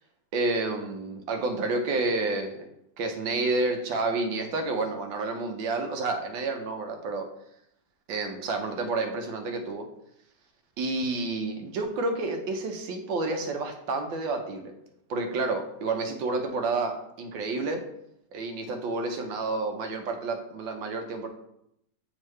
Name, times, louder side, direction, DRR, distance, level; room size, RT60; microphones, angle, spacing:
voice 1, 0.3-2.7 3.0-7.3 8.1-9.9 10.8-14.7 15.1-17.8 18.3-21.3, right 3 dB, 75° right, 5 dB, 1.4 m, -30 dB
8.1 x 3.7 x 3.1 m, 0.78 s
omnidirectional pair, 2.2 m